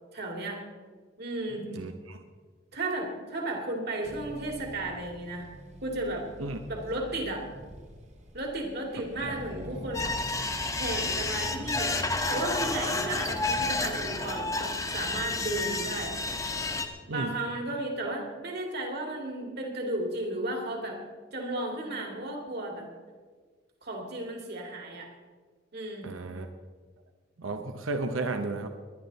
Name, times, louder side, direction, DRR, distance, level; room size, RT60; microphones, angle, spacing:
voice 1, 0.1-0.6 1.2-1.7 2.7-5.5 5.8-6.3 6.7-7.5 8.3-10.1 10.8-12.0 12.3-16.2 17.0-21.0 21.3-22.9 23.8-25.1 25.7-26.1, right 1 dB, 55° right, 1 dB, 2.7 m, -34 dB
voice 2, 1.7-2.2 6.4-6.6 17.1-17.3 26.0-26.5 27.4-28.7, right 3 dB, 85° right, 6 dB, 0.9 m, -33 dB
Accelerating revving vroom, 4.0-14.4, equal, 35° right, 1.3 m, -46 dB
sound 1, 9.9-16.9, left 2 dB, 15° left, 1.0 m, -30 dB
21.0 x 11.0 x 4.1 m, 1.5 s
head